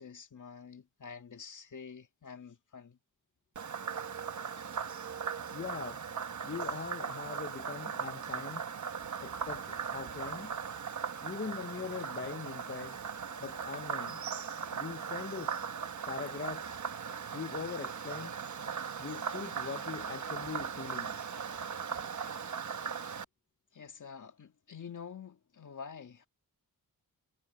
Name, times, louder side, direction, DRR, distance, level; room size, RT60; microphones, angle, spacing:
voice 1, 0.0-3.0 23.7-26.3, left 6 dB, 55° left, 2.1 m, -47 dB
Frog, 3.6-23.2, right 6 dB, 50° right, 1.2 m, -39 dB
voice 2, 5.5-6.0 6.4-8.6 9.2-10.6 11.2-13.0 13.4-14.2 14.7-15.5 16.1-16.7 17.3-18.3 19.0-21.2, left 5 dB, 35° left, 0.8 m, -41 dB
wide cardioid pair, 115°, 37 cm